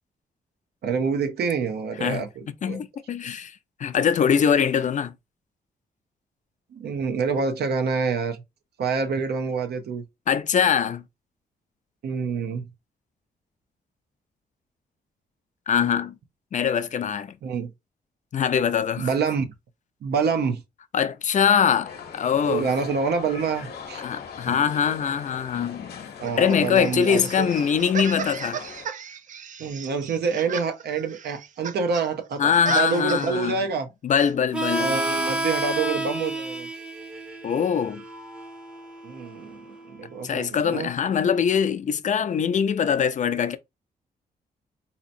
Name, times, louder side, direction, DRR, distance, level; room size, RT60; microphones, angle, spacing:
voice 1, 0.8-2.8 6.7-8.4 8.8-10.0 12.0-12.7 17.4-17.7 19.0-19.5 20.0-20.6 22.5-24.0 24.5-24.6 26.2-27.5 29.6-33.9 34.8-36.7 39.0-40.9, right 5 dB, 80° right, 0.7 m, -27 dB
voice 2, 2.0-5.1 10.3-11.0 15.7-16.1 16.5-17.3 18.3-19.1 20.9-22.7 24.0-28.6 32.4-33.6 34.0-35.0 37.4-38.0 40.2-43.6, left 7 dB, 50° left, 0.5 m, -23 dB
sound 1, 21.8-28.9, left 6 dB, 80° left, 0.8 m, -40 dB
sound 2, 26.2-32.1 32.3-33.5 34.2-34.3, right 8 dB, 50° right, 0.4 m, -35 dB
Harmonica, 34.5-39.8, right 1 dB, 5° right, 0.6 m, -30 dB
4.1 x 2.8 x 2.6 m
cardioid pair, 100°, 16 cm